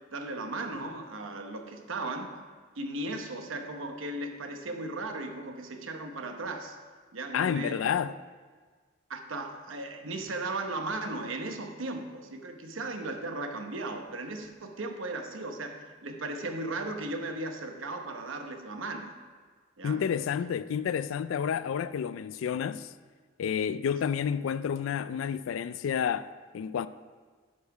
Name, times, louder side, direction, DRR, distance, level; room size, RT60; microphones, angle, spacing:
voice 1, 0.1-2.3 2.8-6.8 7.1-7.8 9.1-19.2 19.8-20.0, right 2 dB, 75° right, 0.9 m, -36 dB
voice 2, 7.3-8.2 19.8-22.9 23.4-26.9, left 7 dB, 75° left, 0.3 m, -30 dB
10.5 x 5.5 x 4.8 m
head